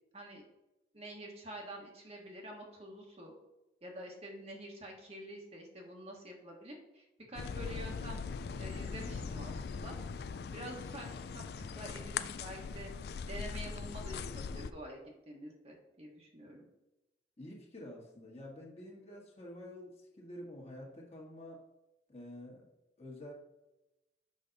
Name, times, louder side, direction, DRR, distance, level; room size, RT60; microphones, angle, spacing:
voice 1, 0.9-3.3 3.8-10.0 10.5-12.9 13.3-16.7, right 1 dB, 35° right, 0 dB, 1.2 m, -47 dB
sound 1, 7.3-14.7, left 5 dB, 60° left, 0.3 m, -40 dB
voice 2, 17.4-21.6 22.1-22.7 23.0-23.3, left 1 dB, 35° left, -2 dB, 1.5 m, -48 dB
6.5 x 5.1 x 3.9 m, 0.95 s
head